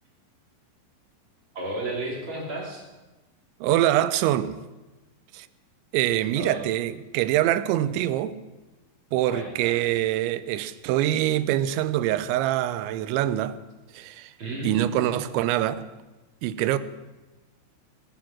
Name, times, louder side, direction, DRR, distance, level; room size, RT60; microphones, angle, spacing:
voice 1, 1.5-2.8 6.4-6.6 9.3-9.8 14.4-15.2, right 1 dB, 30° right, 4.0 m, -33 dB
voice 2, 3.6-4.6 5.3-5.5 5.9-8.4 9.1-13.6 13.9-14.3 14.6-15.9 16.4-16.8, right 13 dB, 85° right, 3.0 m, -24 dB
19.0 x 10.5 x 6.1 m
omnidirectional pair, 5.2 m